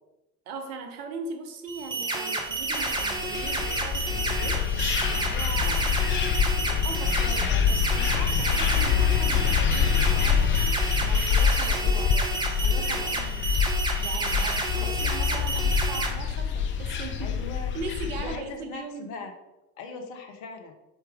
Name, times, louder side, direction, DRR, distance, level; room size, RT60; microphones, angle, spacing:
voice 1, 0.5-5.8 6.6-13.6 14.0-17.4 17.7-19.1, right 4 dB, 60° right, 5 dB, 0.9 m, -40 dB
sound 1, 1.7-16.1, right 3 dB, 10° right, 0.7 m, -30 dB
sound 2, 2.7-18.4, left 7 dB, 25° left, 0.4 m, -26 dB
voice 2, 17.2-17.8 18.1-19.3 19.8-20.7, left 4 dB, 60° left, 5 dB, 0.8 m, -39 dB
4.3 x 3.3 x 3.5 m, 0.98 s
figure-of-eight pair, 65°, 46 cm